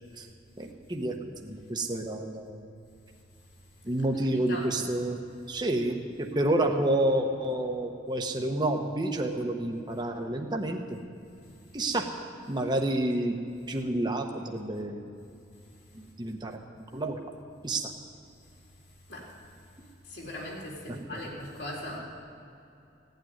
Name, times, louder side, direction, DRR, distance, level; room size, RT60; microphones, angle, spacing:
voice 1, 0.6-1.2 1.4-2.6 3.8-5.2 5.5-11.0 11.7-12.1 12.5-13.4 13.7-15.2 15.9-16.6 16.9-17.3 17.6-17.9 21.1-21.2, right 1 dB, 25° right, 3 dB, 1.1 m, -29 dB
voice 2, 4.3-4.7 19.1-19.3 20.0-22.0, left 1 dB, 70° left, -3 dB, 3.8 m, -39 dB
16.5 x 9.2 x 9.6 m, 2.7 s
head